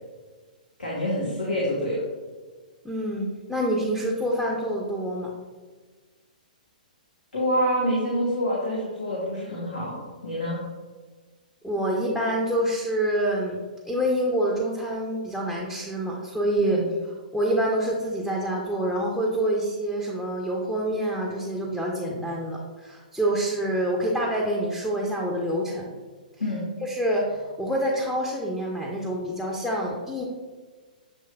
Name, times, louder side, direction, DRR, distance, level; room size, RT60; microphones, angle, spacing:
voice 1, 0.8-2.0 7.3-10.6 16.6-16.9 26.4-26.6, equal, 80° left, -6 dB, 1.3 m, -27 dB
voice 2, 2.8-5.3 11.6-16.8 17.3-25.9 26.8-30.2, right 1 dB, 5° left, -3 dB, 0.6 m, -27 dB
7.6 x 3.1 x 2.2 m, 1.4 s
figure-of-eight pair, 120°, 5 cm